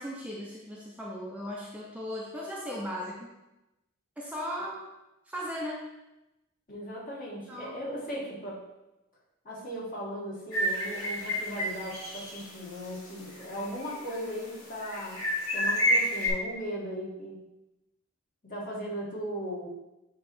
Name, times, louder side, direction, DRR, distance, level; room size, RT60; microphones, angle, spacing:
voice 1, 0.0-3.3 4.2-4.8 5.3-5.8 7.5-7.8, equal, 5° right, -4 dB, 0.7 m, -37 dB
voice 2, 6.7-8.6 9.5-15.2 15.5-17.4 18.4-19.7, equal, 40° left, -5 dB, 2.0 m, -37 dB
sound 1, 10.5-12.4 12.8-12.9 13.4-14.2 14.8-16.3, equal, 85° left, 2.2 m, -29 dB
8.3 x 3.1 x 4.5 m, 0.96 s
head